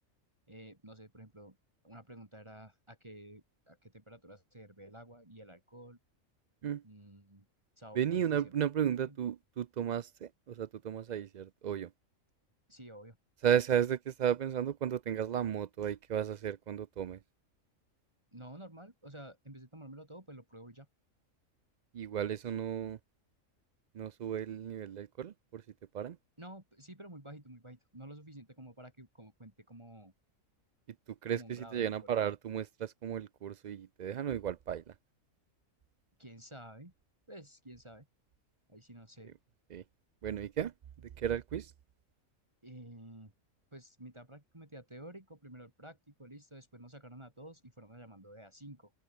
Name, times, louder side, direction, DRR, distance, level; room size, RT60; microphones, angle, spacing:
voice 1, 0.5-1.6 1.8-6.0 6.8-7.5 7.8-8.5 9.0-9.2 12.7-13.2 18.3-20.9 26.4-30.1 31.3-32.1 36.2-36.9 37.3-38.1 38.7-39.3 42.6-43.3 43.7-48.9, right 1 dB, 20° right, 2.8 m, -51 dB
voice 2, 8.0-11.9 13.4-17.2 21.9-23.0 24.0-25.6 25.9-26.2 31.2-34.8 39.7-39.8 40.2-40.7 41.2-41.7, right 9 dB, 90° right, 0.3 m, -34 dB
open air
omnidirectional pair, 1.4 m